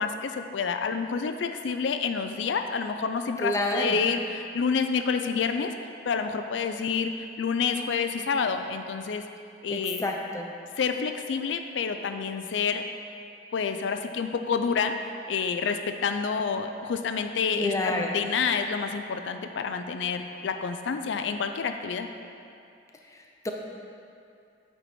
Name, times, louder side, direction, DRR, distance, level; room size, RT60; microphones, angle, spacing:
voice 1, 0.0-5.7 6.1-7.1 7.4-9.2 9.6-10.0 10.8-12.8 13.5-14.9 15.3-22.1, left 5 dB, 90° left, 7 dB, 0.4 m, -28 dB
voice 2, 3.4-4.0 9.7-10.5 17.5-18.1 23.0-23.5, left 1 dB, 15° left, 1 dB, 0.5 m, -29 dB
8.0 x 4.6 x 4.3 m, 2.5 s
head